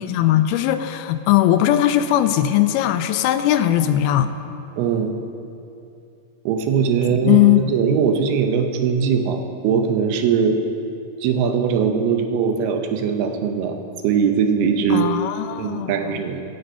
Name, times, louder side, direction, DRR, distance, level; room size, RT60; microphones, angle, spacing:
voice 1, 0.0-4.3 7.1-7.7 14.9-16.1, left 12 dB, 85° left, 10 dB, 2.4 m, -19 dB
voice 2, 4.8-5.1 6.5-9.4 9.6-10.6 11.2-13.7 14.0-15.1 15.6-16.4, right 6 dB, 90° right, 5 dB, 2.8 m, -20 dB
16.0 x 7.9 x 5.6 m, 2.6 s
omnidirectional pair, 4.4 m